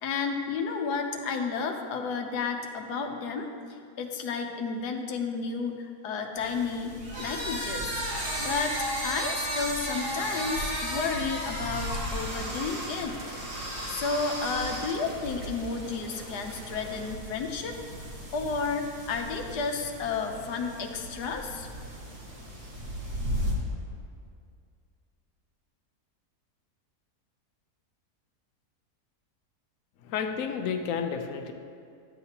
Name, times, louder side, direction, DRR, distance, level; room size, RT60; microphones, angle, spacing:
voice 1, 0.0-3.5 4.0-8.0 8.4-13.2 13.9-17.8 18.3-21.7, left 4 dB, 85° left, 4 dB, 1.3 m, -32 dB
sound 1, 6.3-23.5, equal, 55° right, 1.9 m, -40 dB
sound 2, 7.0-15.2, right 1 dB, 80° right, 2.2 m, -34 dB
sound 3, 12.1-17.1, right 1 dB, 35° right, 0.9 m, -46 dB
voice 2, 30.0-31.5, left 6 dB, 65° left, 5 dB, 0.9 m, -31 dB
11.5 x 8.1 x 2.9 m, 2.3 s
omnidirectional pair, 1.7 m